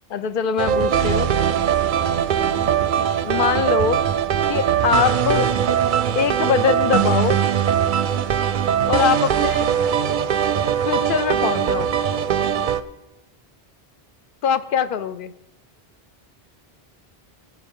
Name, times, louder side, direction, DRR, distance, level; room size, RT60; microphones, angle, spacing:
voice 1, 0.1-1.3 2.6-2.7 3.0-4.1 4.5-5.5 6.1-7.4 8.9-9.7 10.9-11.9 14.4-15.3, left 7 dB, 65° left, 13 dB, 0.7 m, -22 dB
sound 1, 0.6-12.8, right 9 dB, 60° right, 0.6 m, -21 dB
17.0 x 7.9 x 3.6 m, 1.0 s
omnidirectional pair, 1.0 m